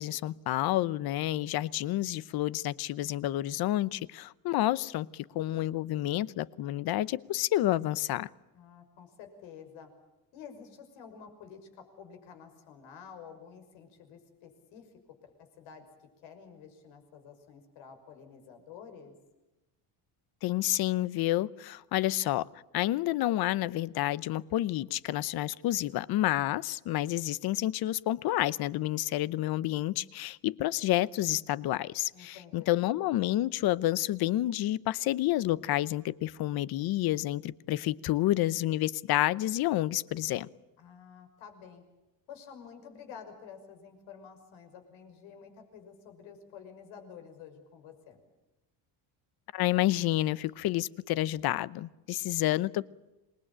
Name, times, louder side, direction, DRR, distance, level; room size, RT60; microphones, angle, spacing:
voice 1, 0.0-8.3 20.4-22.5 22.7-40.5 49.5-52.8, left 15 dB, 55° left, 19 dB, 0.8 m, -29 dB
voice 2, 8.5-9.9 10.3-14.9 15.2-15.9 16.2-19.1 32.1-32.9 40.8-41.8 42.3-48.2, left 7 dB, 85° left, 7 dB, 6.1 m, -50 dB
27.0 x 21.0 x 8.8 m, 1.0 s
cardioid pair, 170°, 45 cm